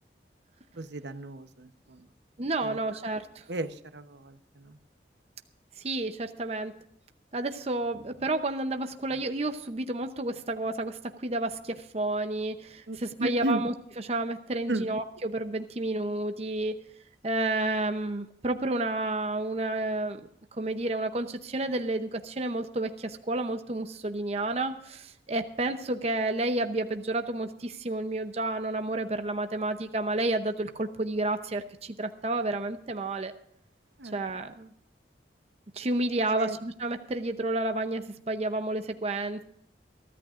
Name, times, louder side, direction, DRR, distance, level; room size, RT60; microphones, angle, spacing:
voice 1, 0.8-2.1 2.6-2.8 3.5-4.8 12.9-13.6 14.7-14.9 34.0-34.2 36.2-36.6, right 1 dB, 70° right, 9 dB, 0.9 m, -34 dB
voice 2, 2.4-3.4 5.8-6.8 7.3-13.7 14.1-16.8 17.2-20.2 20.5-33.3 34.1-34.7 35.7-39.4, right 2 dB, 35° right, 7 dB, 0.7 m, -30 dB
23.0 x 13.5 x 2.5 m, 0.70 s
head